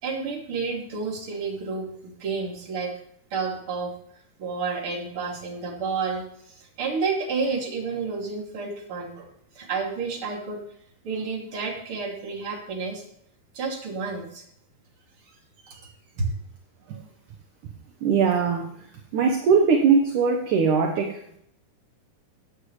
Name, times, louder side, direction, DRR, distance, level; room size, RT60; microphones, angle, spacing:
voice 1, 0.0-2.9 3.3-3.9 4.4-6.2 6.5-9.3 9.5-10.6 11.0-13.0 13.5-14.4 15.6-15.9 16.2-16.3, right 4 dB, 35° right, -1 dB, 3.1 m, -30 dB
voice 2, 18.0-18.7 19.1-21.4, right 5 dB, 65° right, 3 dB, 2.3 m, -21 dB
16.5 x 8.9 x 3.3 m, 0.70 s
omnidirectional pair, 4.5 m